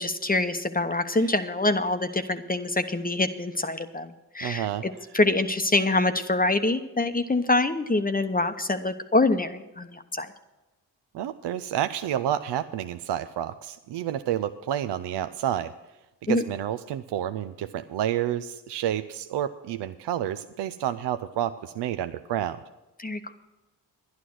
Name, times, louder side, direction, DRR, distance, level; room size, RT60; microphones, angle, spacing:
voice 1, 0.0-10.3 16.3-16.4 23.0-23.3, left 2 dB, 20° left, 9 dB, 0.9 m, -25 dB
voice 2, 4.4-4.8 11.1-15.7 16.2-22.6, right 11 dB, 65° right, 10 dB, 0.6 m, -29 dB
11.0 x 9.6 x 6.2 m, 1.0 s
supercardioid pair, 45°, 46 cm